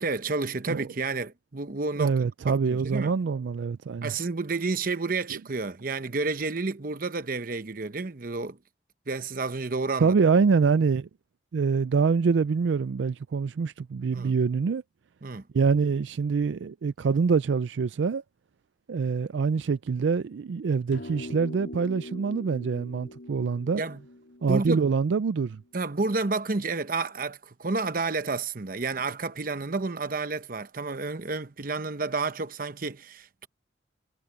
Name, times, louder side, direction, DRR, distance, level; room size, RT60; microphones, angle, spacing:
voice 1, 0.0-2.1 2.5-3.1 4.0-8.6 9.1-10.1 14.1-14.3 15.2-15.4 23.8-24.0 24.5-24.8 25.7-33.5, right 3 dB, 50° right, 0.9 m, -30 dB
voice 2, 2.0-4.1 10.0-11.1 11.5-14.8 15.5-18.2 18.9-23.8 24.4-25.6, right 5 dB, 80° right, 0.4 m, -25 dB
sound 1, 20.9-25.5, left 1 dB, 75° left, 4.1 m, -43 dB
head